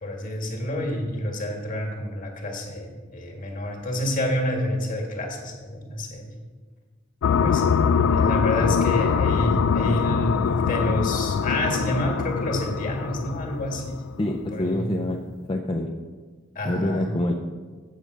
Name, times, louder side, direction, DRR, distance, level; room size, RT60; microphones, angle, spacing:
voice 1, 0.0-6.3 7.4-7.6 8.1-14.0 14.5-14.9 16.5-17.1, left 1 dB, 45° left, 0 dB, 1.7 m, -28 dB
sound 1, 7.2-14.4, left 6 dB, 90° left, 0.3 m, -23 dB
voice 2, 14.2-15.2 15.5-15.9 16.7-17.3, left 1 dB, 25° left, 2 dB, 0.5 m, -26 dB
8.0 x 5.2 x 6.5 m, 1.4 s
head